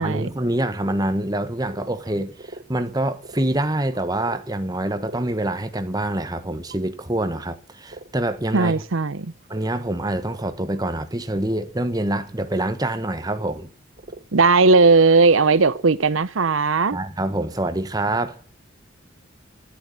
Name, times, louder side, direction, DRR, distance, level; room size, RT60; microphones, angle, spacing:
voice 1, 0.0-8.8 9.5-13.7 16.9-18.4, right 1 dB, 20° right, 1.3 m, -26 dB
sound 1, 0.9-1.0 1.3-1.4 1.6-2.8 3.1-3.5 3.9-4.4 4.9-5.2 6.2-6.8 7.3-7.5 7.9-8.1 8.7-9.1 9.4-9.7 10.2-10.8 11.5-11.7 12.0-12.1 12.4-12.9 13.2-15.0 15.5-16.1, right 2 dB, 40° right, 1.2 m, -41 dB
voice 2, 8.5-9.3 14.3-17.0, right 4 dB, 80° right, 0.8 m, -17 dB
12.0 x 11.0 x 9.7 m
head